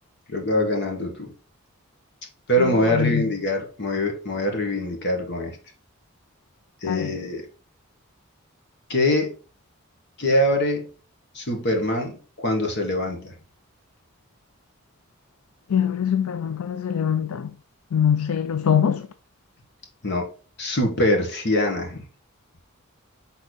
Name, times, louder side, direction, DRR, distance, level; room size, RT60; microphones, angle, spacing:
voice 1, 0.3-1.3 2.5-5.6 6.8-7.4 8.9-9.3 10.2-10.9 11.3-13.3 20.0-20.3 20.6-22.0, left 1 dB, 55° left, 1.5 m, -23 dB
voice 2, 2.6-3.2 6.8-7.2 15.7-17.5 17.9-19.1, left 8 dB, 90° left, 0.4 m, -23 dB
6.4 x 3.9 x 4.0 m
head